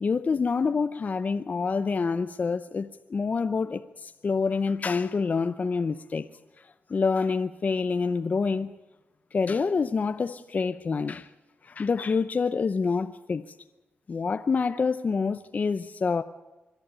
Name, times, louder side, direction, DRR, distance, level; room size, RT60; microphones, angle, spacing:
voice 1, 0.0-6.3 6.9-8.7 9.3-11.3 11.6-13.4 14.1-16.2, left 4 dB, 45° left, 0.7 m, -27 dB
25.0 x 11.5 x 9.8 m
wide cardioid pair, 100°, 4 cm